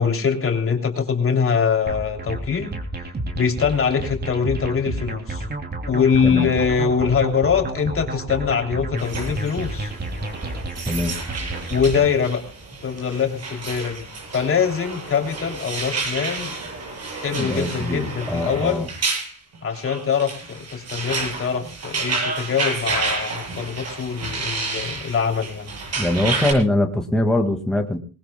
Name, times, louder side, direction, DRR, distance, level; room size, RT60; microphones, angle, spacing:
voice 1, 0.0-2.7 3.3-5.4 5.9-9.9 11.7-12.4 12.8-16.5 17.1-18.9 19.6-25.7, left 6 dB, 45° left, 3 dB, 3.2 m, -23 dB
sound 1, 1.9-12.2, right 2 dB, 30° right, 3.0 m, -31 dB
voice 2, 6.2-6.5 10.9-11.2 17.4-18.9 26.0-28.0, left 1 dB, ahead, 2 dB, 2.0 m, -22 dB
sound 2, 9.0-26.5, right 3 dB, 55° right, 7.8 m, -30 dB
20.5 x 19.5 x 2.3 m, 0.35 s
cardioid pair, 90°, 30 cm